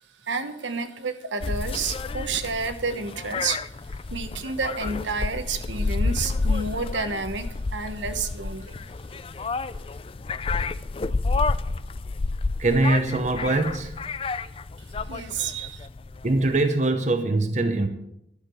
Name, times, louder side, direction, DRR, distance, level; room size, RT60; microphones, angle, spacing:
voice 1, 0.2-8.8 15.1-15.9, right 4 dB, 75° right, 8 dB, 1.1 m, -30 dB
sound 1, 1.4-16.6, left 3 dB, 30° left, 0.4 m, -30 dB
voice 2, 12.6-14.1 16.2-17.9, right 2 dB, 40° right, 7 dB, 0.9 m, -23 dB
11.5 x 6.6 x 7.8 m, 0.79 s
head